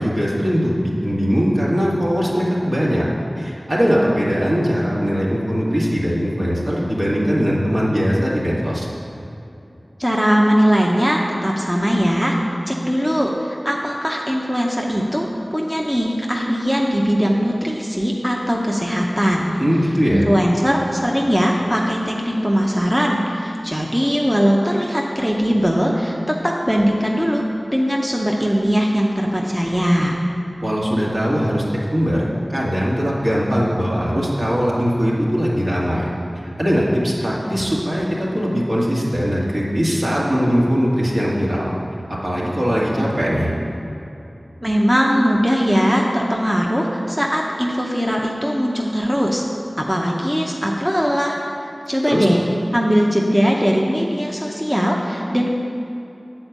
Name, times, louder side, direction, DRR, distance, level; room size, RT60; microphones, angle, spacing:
voice 1, 0.0-3.0 3.4-8.9 19.6-20.3 30.6-31.6 31.9-41.7 42.1-43.5 52.1-52.3, equal, 60° right, -6 dB, 2.0 m, -20 dB
voice 2, 10.0-12.4 12.7-19.5 20.1-27.4 27.7-30.2 44.6-49.4 49.8-51.4 51.9-52.4 52.7-55.5, equal, 10° right, -1 dB, 0.7 m, -20 dB
8.7 x 4.4 x 7.3 m, 2.8 s
wide cardioid pair, 50°, 0 cm